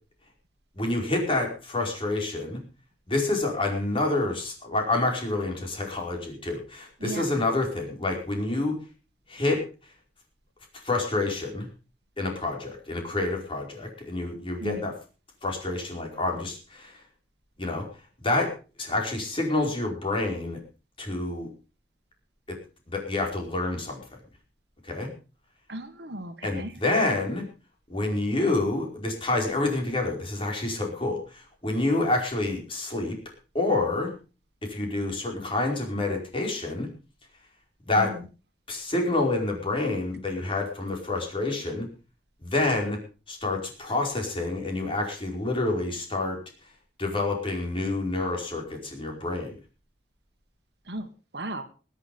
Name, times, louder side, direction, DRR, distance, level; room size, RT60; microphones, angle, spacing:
voice 1, 0.7-2.6 3.1-8.7 9.3-9.6 10.7-11.7 12.2-14.9 15.4-17.0 17.6-17.8 18.2-18.5 18.8-20.6 21.0-21.5 22.9-24.0 24.8-25.1 26.4-27.4 27.9-33.2 33.5-34.1 34.7-36.9 37.9-38.1 38.7-41.9 42.4-43.0 43.3-46.4 47.0-49.6, left 2 dB, 30° left, 1 dB, 4.8 m, -28 dB
voice 2, 7.0-7.4 14.6-14.9 25.7-26.8 38.0-38.2 50.9-51.6, right 1 dB, 60° right, 9 dB, 1.7 m, -36 dB
22.0 x 8.2 x 5.3 m, 0.36 s
head